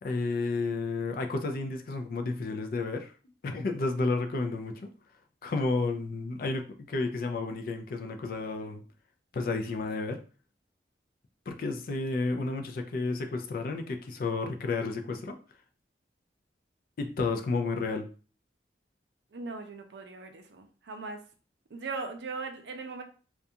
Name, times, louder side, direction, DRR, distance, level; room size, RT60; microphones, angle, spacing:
voice 1, 0.0-3.1 3.4-4.9 5.4-8.8 9.3-10.2 11.5-15.3 17.0-18.1, left 3 dB, 55° left, 5 dB, 0.4 m, -31 dB
voice 2, 19.3-21.2 21.7-23.0, right 4 dB, 70° right, 5 dB, 0.4 m, -39 dB
2.4 x 2.2 x 2.7 m, 0.38 s
head